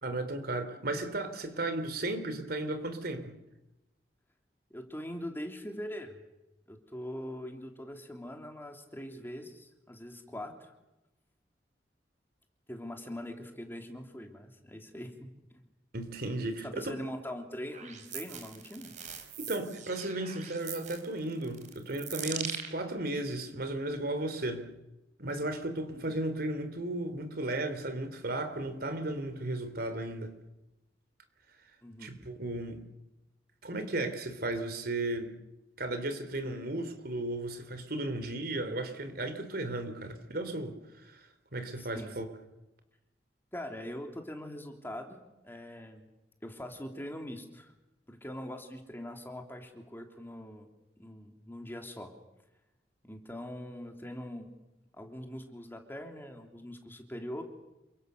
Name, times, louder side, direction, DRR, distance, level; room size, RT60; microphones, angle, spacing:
voice 1, 0.0-3.4 15.9-17.0 19.4-24.7 25.2-30.3 32.0-32.8 33.6-35.3 35.8-40.8 41.0-42.3, right 2 dB, 60° right, 9 dB, 3.4 m, -35 dB
voice 2, 4.7-6.1 6.7-10.7 12.7-15.6 16.6-18.9 26.0-26.2 31.8-32.1 41.8-42.1 43.5-45.2 45.4-46.1 46.4-47.7 48.1-50.7 51.0-52.1 53.0-54.5 54.9-57.4, equal, 15° left, 4 dB, 3.3 m, -42 dB
sound 1, 17.7-22.7, right 7 dB, 45° right, 4.3 m, -41 dB
29.0 x 24.5 x 6.9 m, 0.96 s
head